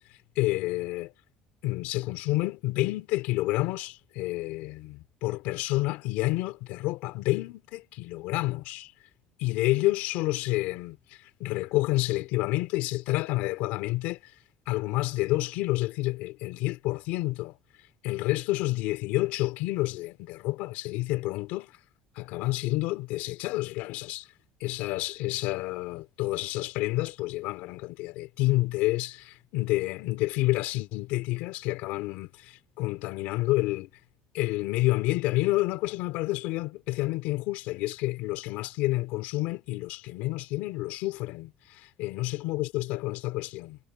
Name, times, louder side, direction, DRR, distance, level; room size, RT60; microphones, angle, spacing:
voice 1, 0.4-1.1 1.6-8.9 9.4-14.3 14.7-17.6 18.0-21.7 22.2-24.3 24.6-33.9 34.3-43.8, left 19 dB, 75° left, 2.7 m, -29 dB
cardioid pair, 175°, 3 cm